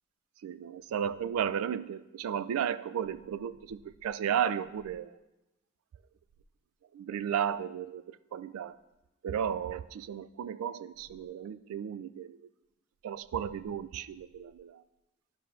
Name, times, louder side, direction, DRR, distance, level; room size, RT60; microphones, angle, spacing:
voice 1, 0.4-5.2 6.9-8.8 9.2-12.5 13.0-14.8, right 8 dB, 85° right, 16 dB, 0.3 m, -34 dB
11.5 x 5.8 x 2.4 m, 1.0 s
head